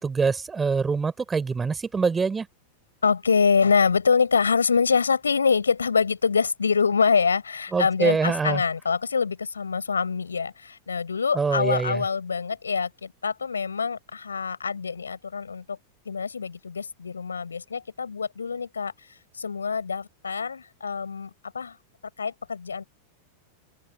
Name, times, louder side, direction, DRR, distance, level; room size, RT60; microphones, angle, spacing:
voice 1, 0.0-2.5 7.7-8.6 11.3-12.0, right 5 dB, 15° right, 6.3 m, -24 dB
voice 2, 3.0-15.8 16.1-18.9 19.3-21.8 22.2-22.8, left 5 dB, 75° left, 7.2 m, -25 dB
figure-of-eight pair, 90°, 0 cm